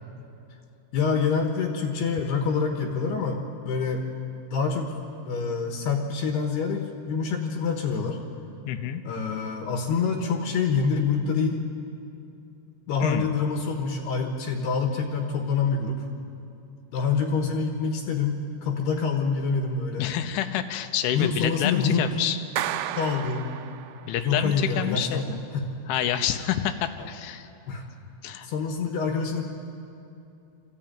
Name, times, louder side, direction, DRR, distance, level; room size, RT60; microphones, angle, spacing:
voice 1, 0.9-4.0 4.5-4.9 5.3-8.2 9.0-11.6 12.9-16.0 16.9-20.1 21.1-22.1 23.0-23.5 24.2-25.3 25.5-25.7 27.0-27.1 27.7-27.8 28.4-29.4, left 5 dB, 70° left, 3 dB, 3.1 m, -26 dB
voice 2, 8.7-9.0 13.0-13.3 20.0-22.4 24.1-25.4 25.9-27.5 28.2-28.5, left 11 dB, 85° left, 8 dB, 3.3 m, -28 dB
Clapping, 22.6-24.2, right 12 dB, 90° right, 3.1 m, -32 dB
24.5 x 14.5 x 8.9 m, 2.7 s
omnidirectional pair, 5.3 m